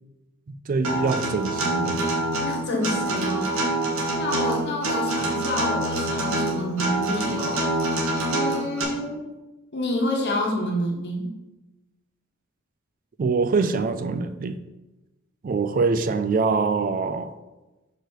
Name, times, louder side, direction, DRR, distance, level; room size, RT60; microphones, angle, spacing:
voice 1, 0.5-2.1 13.2-14.6 15.4-17.3, right 4 dB, 40° right, 10 dB, 0.4 m, -24 dB
Acoustic guitar, 0.8-8.8, right 1 dB, 90° right, 1.4 m, -25 dB
voice 2, 2.4-3.5 4.1-8.0 8.3-9.3 9.7-11.3, left 1 dB, 55° left, -1 dB, 1.3 m, -28 dB
6.3 x 4.8 x 4.6 m, 1.1 s
head